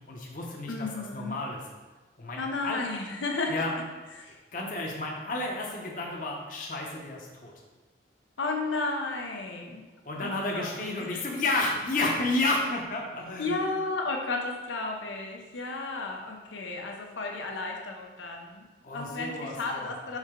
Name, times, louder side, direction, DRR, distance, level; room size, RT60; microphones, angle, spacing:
voice 1, 0.0-1.6 2.2-2.8 3.5-3.7 4.5-7.5 10.0-13.7 18.8-19.9, left 2 dB, 45° left, -1 dB, 0.8 m, -31 dB
voice 2, 0.7-1.4 2.4-3.6 4.2-4.4 8.4-9.8 10.2-11.2 13.4-18.7 18.9-20.2, left 3 dB, 90° left, 1 dB, 0.7 m, -33 dB
5.4 x 4.7 x 3.7 m, 1.2 s
head